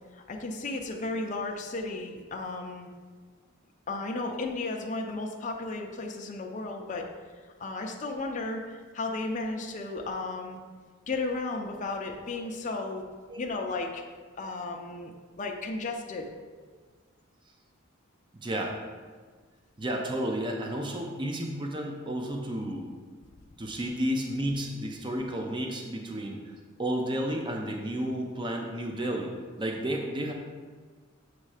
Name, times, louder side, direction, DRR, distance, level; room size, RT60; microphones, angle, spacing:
voice 1, 0.1-2.9 3.9-7.1 7.6-10.6 11.1-13.1 13.4-14.0 14.4-15.1 15.4-16.3, left 3 dB, 35° left, 1 dB, 0.5 m, -34 dB
voice 2, 18.3-18.8 19.8-22.9 23.6-26.5 26.8-30.3, right 1 dB, 20° right, 1 dB, 0.5 m, -32 dB
7.5 x 3.2 x 4.8 m, 1.5 s
head